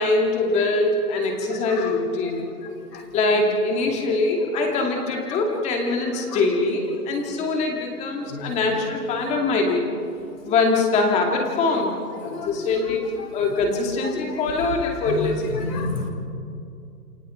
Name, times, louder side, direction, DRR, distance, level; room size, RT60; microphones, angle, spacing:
voice 1, 0.0-2.5 3.1-9.9 10.4-13.0 13.3-15.7, left 3 dB, 15° left, 1 dB, 2.5 m, -23 dB
voice 2, 1.3-1.9 2.9-3.1 5.1-5.4 6.3-6.4 7.2-7.3 8.3-8.8 12.2-12.7 14.1-14.4 15.0-16.1, left 3 dB, 75° left, 3 dB, 5.1 m, -32 dB
29.0 x 28.5 x 4.6 m, 2.5 s
hypercardioid pair, 160°, 47 cm